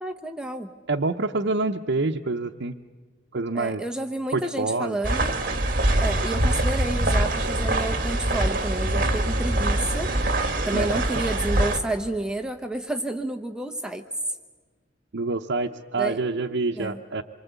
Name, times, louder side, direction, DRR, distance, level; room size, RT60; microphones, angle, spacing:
voice 1, 0.0-0.7 3.5-5.4 6.0-10.1 10.6-14.1 16.0-16.2 16.8-17.0, right 1 dB, 5° right, 5 dB, 0.8 m, -30 dB
voice 2, 0.9-2.8 3.3-3.8 4.3-5.0 10.7-11.1 15.1-17.2, right 3 dB, 70° right, 0 dB, 0.8 m, -27 dB
sound 1, 5.0-11.8, right 1 dB, 45° right, 2.1 m, -24 dB
26.5 x 24.0 x 8.1 m, 1.4 s
head